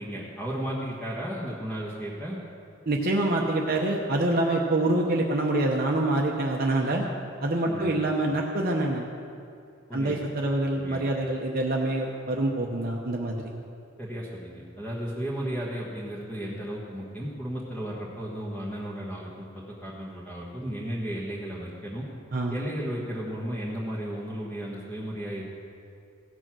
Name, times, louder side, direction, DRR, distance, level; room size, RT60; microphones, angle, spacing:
voice 1, 0.0-2.4 7.6-8.0 9.9-10.2 10.8-11.1 14.0-22.1 22.5-25.5, equal, 5° left, -7 dB, 1.4 m, -34 dB
voice 2, 2.9-7.1 7.4-9.0 9.9-13.5 22.3-22.6, right 2 dB, 50° right, -1 dB, 0.9 m, -26 dB
16.0 x 6.6 x 6.1 m, 2.5 s
head